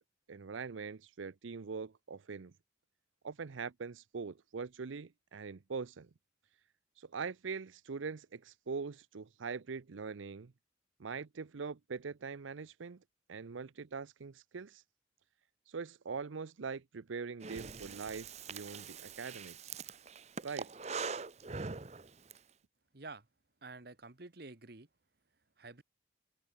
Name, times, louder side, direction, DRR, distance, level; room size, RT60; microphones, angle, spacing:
voice 1, 0.3-2.5 3.2-6.1 7.0-10.5 11.0-13.0 13.3-14.8 15.7-19.8 20.4-20.7, right 5 dB, 85° right, 0.6 m, -42 dB
Breathing, 17.4-22.4, right 5 dB, 35° right, 0.7 m, -43 dB
voice 2, 22.9-23.3 23.6-24.9 25.6-25.8, right 3 dB, 55° right, 1.4 m, -49 dB
head